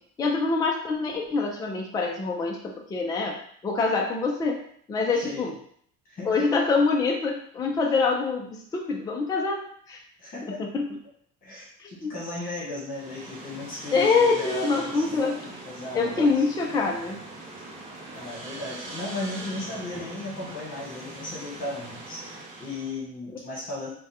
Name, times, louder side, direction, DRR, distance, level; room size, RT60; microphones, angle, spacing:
voice 1, 0.2-3.4 3.6-4.6 4.9-5.5 6.3-10.0 10.4-10.9 11.8-12.1 13.9-15.5 15.9-17.2, left 4 dB, 15° left, 0 dB, 0.3 m, -25 dB
voice 2, 5.1-5.5 6.0-6.3 10.2-10.6 11.4-16.3 18.1-23.9, left 2 dB, 30° left, -6 dB, 1.2 m, -36 dB
sound 1, 12.9-23.0, right 2 dB, 30° right, 0.7 m, -41 dB
3.5 x 2.2 x 4.2 m, 0.62 s
cardioid pair, 170°, 29 cm